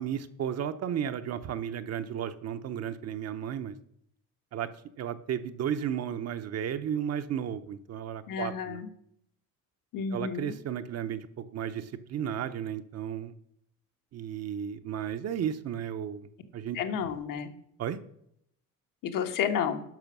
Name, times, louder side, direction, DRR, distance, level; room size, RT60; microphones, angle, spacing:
voice 1, 0.0-3.7 4.5-4.7 5.0-8.8 10.1-13.3 14.1-16.8 17.8-18.0, right 9 dB, 50° right, 10 dB, 0.8 m, -34 dB
voice 2, 8.3-8.9 9.9-10.5 16.7-17.5 19.0-19.8, left 7 dB, 70° left, 6 dB, 1.4 m, -31 dB
10.5 x 6.2 x 6.1 m, 0.74 s
cardioid pair, 145°, 33 cm